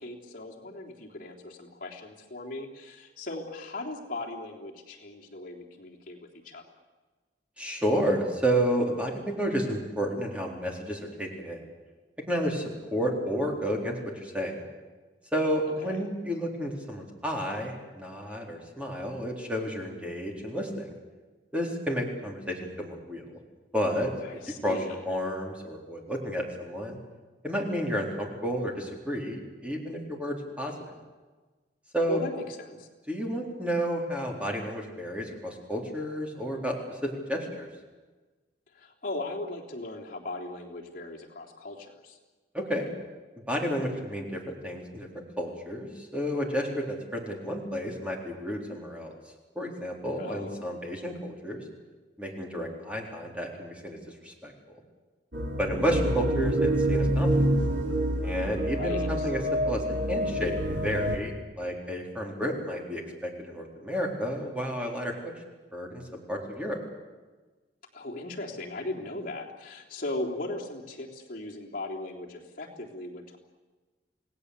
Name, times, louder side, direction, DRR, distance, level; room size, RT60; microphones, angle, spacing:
voice 1, 0.0-6.2 6.4-6.6 15.8-16.0 24.2-25.0 32.1-32.9 38.7-42.2 50.2-50.7 58.7-59.3 67.9-73.4, left 2 dB, 50° left, -2 dB, 3.6 m, -38 dB
voice 2, 7.6-11.6 12.3-14.6 15.3-20.9 21.5-23.2 23.7-24.1 24.6-24.8 25.0-27.0 27.4-30.7 31.9-32.2 33.1-36.8 37.0-37.7 42.5-42.9 43.5-45.1 45.4-49.1 49.6-51.6 52.2-54.5 55.6-57.3 58.2-59.4 59.7-65.1 65.7-66.8, equal, 5° right, 0 dB, 4.0 m, -31 dB
sound 1, 55.3-61.2, right 1 dB, 80° right, 3.2 m, -27 dB
28.5 x 18.5 x 8.4 m, 1.3 s
head